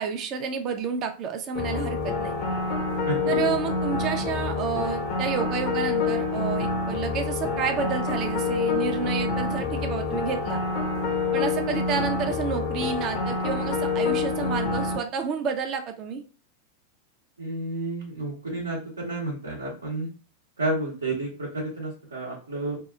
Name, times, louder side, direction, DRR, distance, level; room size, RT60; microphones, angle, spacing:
voice 1, 0.0-2.3 3.3-10.6 11.3-16.2, right 6 dB, 35° right, 5 dB, 0.4 m, -30 dB
sound 1, 1.6-15.0, left 4 dB, 40° left, 0.6 m, -27 dB
voice 2, 3.1-3.4 17.4-20.1 20.6-22.8, right 2 dB, 75° right, -4 dB, 0.7 m, -31 dB
2.7 x 2.3 x 2.3 m, 0.36 s
figure-of-eight pair, 90°, 0 cm